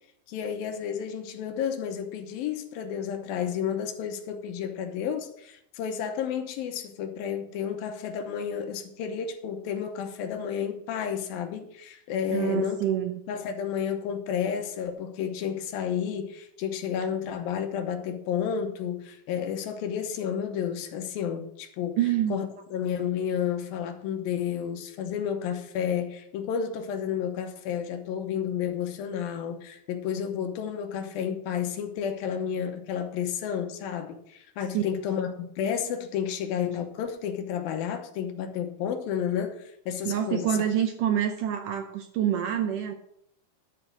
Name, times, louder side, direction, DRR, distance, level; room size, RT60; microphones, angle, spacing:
voice 1, 0.3-12.8 13.3-22.0 22.3-40.5, left 8 dB, 75° left, 2.7 m, -31 dB
voice 2, 12.3-13.2 22.0-22.4 34.7-34.8 40.1-43.0, right 10 dB, 75° right, 2.0 m, -26 dB
11.5 x 5.1 x 7.6 m
omnidirectional pair, 4.4 m